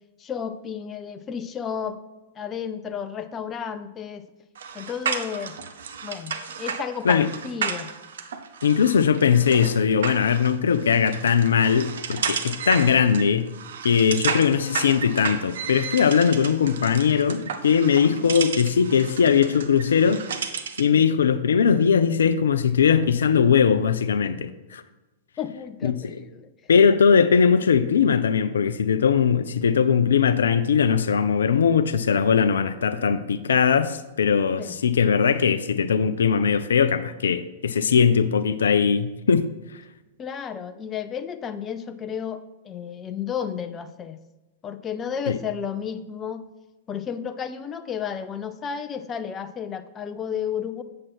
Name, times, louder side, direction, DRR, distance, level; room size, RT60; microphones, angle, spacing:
voice 1, 0.2-2.0 2.3-4.3 4.7-5.6 6.0-7.9 18.0-18.3 20.9-21.1 25.4-26.5 34.6-34.8 40.2-44.2 44.6-46.4 46.9-50.8, left 7 dB, 25° left, 10 dB, 0.5 m, -32 dB
sound 1, 4.5-20.9, right 6 dB, 65° right, 0.7 m, -33 dB
voice 2, 8.6-13.5 13.8-20.2 20.8-24.8 25.8-26.0 26.7-39.4 45.3-45.4, left 6 dB, 70° left, 10 dB, 0.5 m, -20 dB
7.5 x 7.4 x 4.4 m, 1.1 s
figure-of-eight pair, 100°, 0 cm